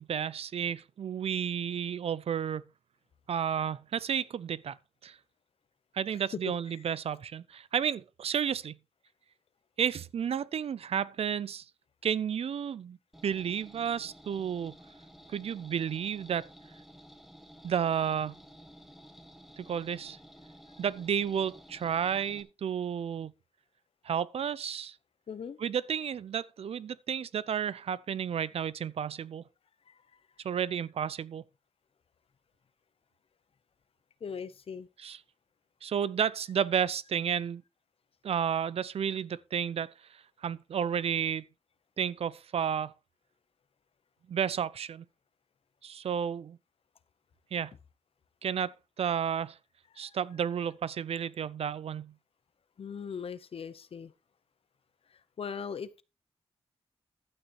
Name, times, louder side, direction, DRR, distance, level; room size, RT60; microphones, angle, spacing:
voice 1, 0.0-2.6 3.3-4.8 5.0-5.2 5.9-8.8 9.8-11.6 12.0-13.0 13.2-14.7 15.3-16.5 17.6-18.4 19.6-20.2 20.8-23.3 24.0-25.0 25.6-29.4 30.4-31.4 35.0-35.2 35.8-37.6 38.2-41.4 42.0-42.9 44.3-45.0 45.8-46.6 47.5-47.7 48.4-49.6 50.0-52.1, right 8 dB, 75° right, 0.5 m, -32 dB
sound 1, 13.1-22.4, equal, ahead, 1.7 m, -53 dB
voice 2, 25.3-25.6 29.9-30.0 34.2-34.9 50.0-50.1 52.8-54.1 55.4-56.0, left 6 dB, 65° left, 0.9 m, -39 dB
12.0 x 8.8 x 3.1 m
wide cardioid pair, 100°, 10 cm